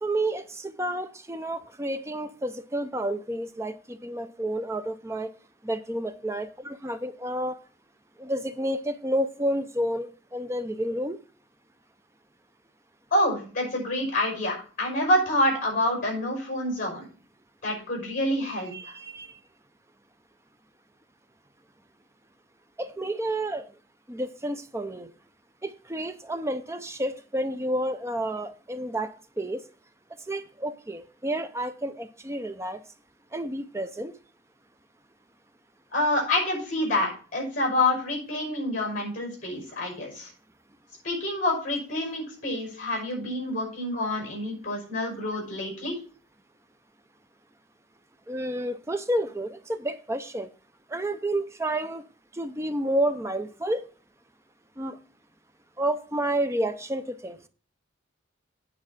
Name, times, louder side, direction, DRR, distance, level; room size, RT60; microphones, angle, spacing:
voice 1, 0.0-5.3 5.6-7.6 8.2-11.2 18.4-19.4 22.8-23.7 24.1-25.1 25.6-29.6 30.3-32.8 33.3-34.2 48.3-50.5 50.9-52.0 52.3-53.9 54.8-55.0 55.8-57.4, right 1 dB, 15° right, 0.6 m, -30 dB
voice 2, 13.1-17.1 17.6-18.9 35.9-40.3 41.0-46.0, left 1 dB, 45° left, 5.5 m, -27 dB
9.1 x 4.7 x 7.2 m
head